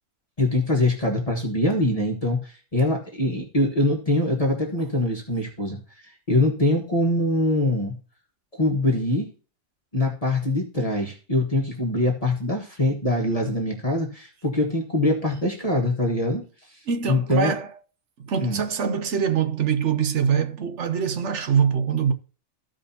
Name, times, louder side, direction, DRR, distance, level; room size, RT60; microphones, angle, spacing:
voice 1, 0.4-7.9 8.5-9.3 9.9-16.4 16.7-16.8 17.1-17.5 18.4-18.6, left 1 dB, 25° left, 1.5 m, -23 dB
voice 2, 16.9-17.7 18.2-22.1, right 7 dB, 60° right, 1.1 m, -23 dB
15.0 x 5.1 x 2.8 m
omnidirectional pair, 1.4 m